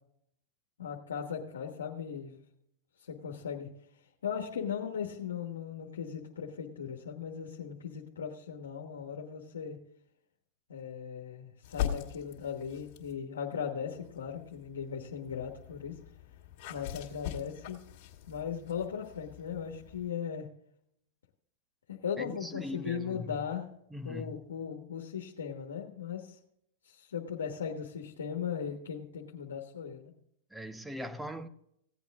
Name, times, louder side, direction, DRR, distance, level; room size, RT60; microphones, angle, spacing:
voice 1, 0.8-2.4 3.0-3.7 4.2-9.8 10.7-16.0 16.7-17.8 18.3-20.5 21.9-23.7 24.0-26.4 26.8-30.1, left 7 dB, 90° left, 1.3 m, -38 dB
sound 1, 11.6-13.2 13.9-20.1, left 10 dB, 50° left, 2.2 m, -42 dB
voice 2, 22.2-23.4 23.9-24.5 30.5-31.5, left 1 dB, 5° right, 0.8 m, -41 dB
16.0 x 8.2 x 3.6 m
hypercardioid pair, 120°, 0 cm